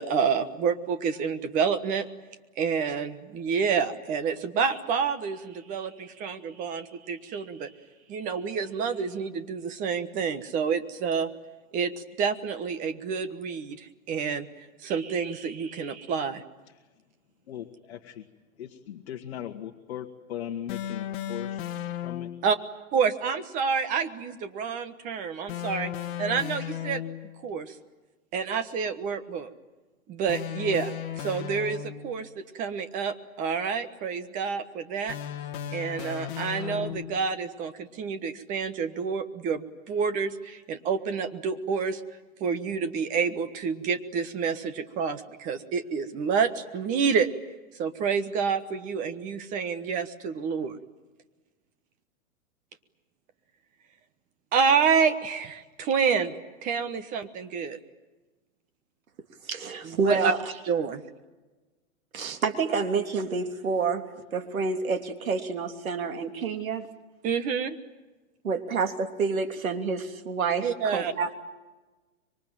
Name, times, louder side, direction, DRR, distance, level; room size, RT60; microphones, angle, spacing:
voice 1, 0.0-2.0 2.6-7.7 8.1-11.3 11.7-11.9 12.2-14.5 14.8-16.4 22.4-22.6 22.9-25.9 26.2-27.0 27.4-27.7 28.3-29.5 30.1-35.2 35.7-42.0 42.4-47.3 47.8-50.8 54.5-56.3 56.6-57.8 59.8-60.3 60.7-61.0 67.2-67.8 70.6-71.1, right 6 dB, 20° right, 10 dB, 1.2 m, -28 dB
voice 2, 17.5-18.2 18.6-21.7 22.0-22.3, left 10 dB, 50° left, 4 dB, 1.7 m, -39 dB
sound 1, 20.7-22.5 25.5-27.4 30.3-32.2 35.1-37.3, left 11 dB, 35° left, 2.1 m, -35 dB
voice 3, 59.4-60.5 62.1-66.9 68.4-71.3, right 5 dB, 85° right, 6 dB, 3.2 m, -28 dB
26.0 x 23.5 x 9.1 m, 1.2 s
hypercardioid pair, 155°, 40 cm